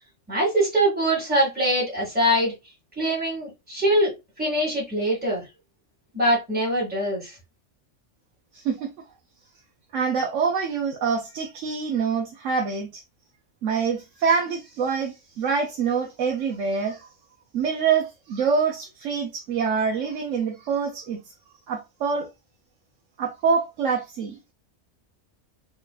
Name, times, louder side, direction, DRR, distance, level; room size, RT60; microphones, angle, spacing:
voice 1, 0.3-2.5 3.0-5.4 6.1-7.3, right 1 dB, 5° right, 2.1 m, -23 dB
voice 2, 8.5-8.9 9.9-13.0 13.6-17.1 17.5-21.2 21.7-22.3 23.2-24.4, right 5 dB, 85° right, 1.1 m, -25 dB
4.3 x 3.1 x 2.4 m
omnidirectional pair, 1.3 m